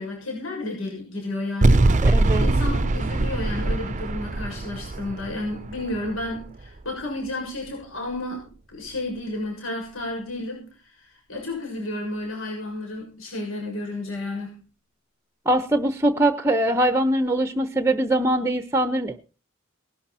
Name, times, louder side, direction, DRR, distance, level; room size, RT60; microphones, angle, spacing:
voice 1, 0.0-14.5, left 2 dB, 75° left, 0 dB, 6.8 m, -32 dB
sound 1, 1.6-6.8, right 2 dB, 35° right, 0.7 m, -22 dB
voice 2, 2.0-2.5 15.5-19.2, right 1 dB, 15° right, 11 dB, 0.9 m, -22 dB
19.5 x 11.5 x 4.3 m, 0.35 s
head